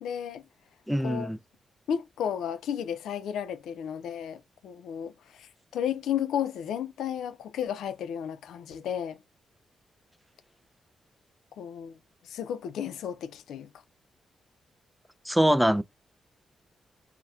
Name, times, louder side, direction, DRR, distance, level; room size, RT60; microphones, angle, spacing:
voice 1, 0.0-0.4 1.0-1.3 1.9-9.2 11.5-12.0 12.2-13.7, left 9 dB, 85° left, 0.4 m, -33 dB
voice 2, 0.9-1.4 15.3-15.8, equal, 5° right, 0.3 m, -23 dB
4.1 x 2.1 x 2.3 m
supercardioid pair, 55°, 0 cm